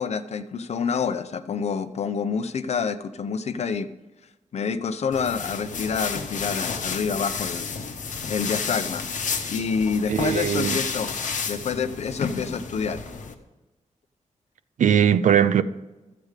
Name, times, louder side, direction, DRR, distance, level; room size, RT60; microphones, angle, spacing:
voice 1, 0.0-3.9 4.5-7.7 8.3-9.0 9.5-11.1 11.4-13.0, left 6 dB, 60° left, 0.7 m, -27 dB
Taking-off-some-nylons, 5.1-13.3, left 5 dB, 85° left, 1.1 m, -31 dB
voice 2, 10.1-10.8 14.8-15.6, right 9 dB, 80° right, 0.5 m, -19 dB
13.5 x 7.9 x 4.9 m
wide cardioid pair, 175°, 13 cm